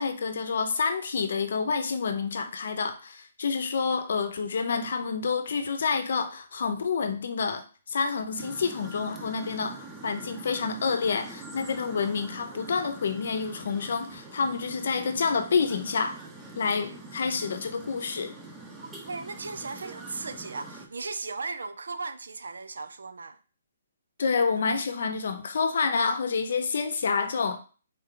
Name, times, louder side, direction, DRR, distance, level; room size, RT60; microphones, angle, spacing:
voice 1, 0.0-16.2 16.6-18.3 24.2-27.6, left 5 dB, 65° left, 0.7 m, -28 dB
sound 1, 8.4-20.9, right 2 dB, 10° right, 0.8 m, -44 dB
voice 2, 19.1-23.4, right 4 dB, 85° right, 0.5 m, -36 dB
3.9 x 3.3 x 3.8 m
hypercardioid pair, 150°, 0 cm